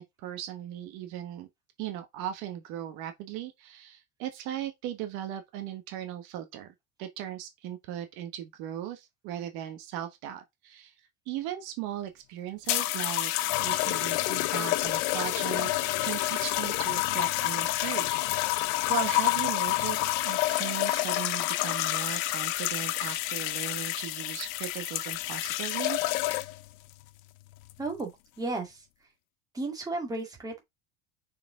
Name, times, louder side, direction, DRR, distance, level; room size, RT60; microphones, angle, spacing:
voice 1, 0.0-1.5 1.8-6.7 7.0-10.9 11.3-13.3 13.6-15.7 16.0-26.0, right 11 dB, 65° right, 1.2 m, -38 dB
sound 1, 12.7-26.7 27.6-27.9, left 18 dB, 75° left, 0.7 m, -28 dB
voice 2, 27.8-28.1 28.4-28.9 29.5-30.6, right 2 dB, 10° right, 2.0 m, -33 dB
6.0 x 4.7 x 3.7 m
cardioid pair, 165°, 31 cm